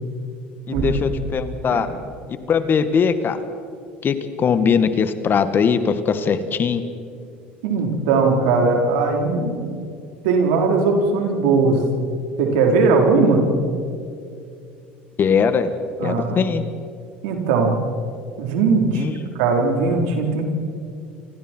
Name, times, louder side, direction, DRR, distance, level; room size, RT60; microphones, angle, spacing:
voice 1, 0.7-1.9 2.3-3.4 4.0-6.8 15.2-15.7 16.0-16.6 18.9-19.1, left 6 dB, 40° left, 10 dB, 1.8 m, -20 dB
Bass drum, 0.7-2.4, right 3 dB, 25° right, 5.6 m, -31 dB
voice 2, 7.6-9.8 10.2-11.8 12.4-13.4 16.0-16.5 17.2-17.8 18.4-19.1 19.4-20.4, right 4 dB, 75° right, 2 dB, 4.0 m, -19 dB
29.0 x 26.0 x 4.6 m, 2.4 s
hypercardioid pair, 75°, 5 cm